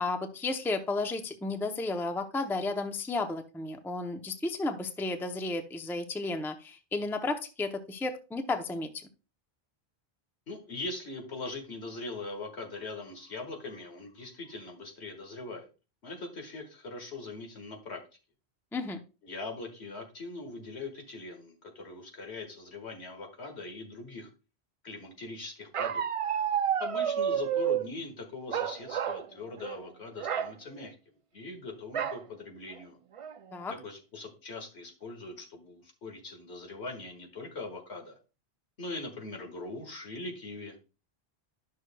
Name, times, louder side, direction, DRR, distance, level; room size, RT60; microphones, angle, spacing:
voice 1, 0.0-8.9 18.7-19.0 33.5-33.7, left 3 dB, 5° left, 6 dB, 0.5 m, -33 dB
voice 2, 10.5-15.7 16.0-18.0 19.2-24.3 24.8-26.1 26.8-33.0 33.8-38.2 38.8-40.8, left 3 dB, 85° left, 2 dB, 1.9 m, -41 dB
Bark, 25.7-27.9 28.5-29.3 29.6-29.8 30.2-30.5 31.9-32.2 32.8-32.9 33.2-33.6, right 9 dB, 60° right, 0.3 m, -30 dB
11.5 x 6.3 x 2.2 m, 0.32 s
omnidirectional pair, 1.1 m